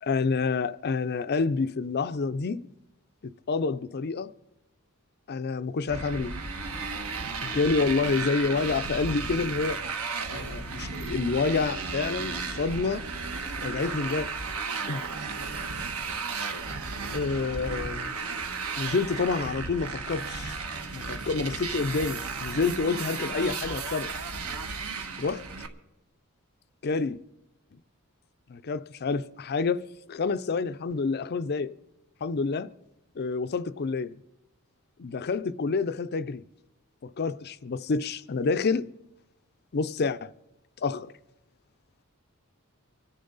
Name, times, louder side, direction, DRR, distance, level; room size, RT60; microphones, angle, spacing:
voice 1, 0.0-2.7 3.5-4.3 5.3-6.3 7.4-9.8 10.3-13.1 13.6-14.3 14.9-15.1 17.1-18.1 18.8-20.5 20.9-24.1 25.2-25.5 26.8-27.2 28.5-31.7 32.2-32.7 33.2-34.2 35.0-36.4 37.0-38.9 39.7-40.3 40.8-41.1, left 4 dB, 45° left, 0.5 m, -28 dB
Motorcycle, 5.9-25.7, right 4 dB, 70° right, 1.2 m, -34 dB
25.0 x 10.0 x 4.0 m
head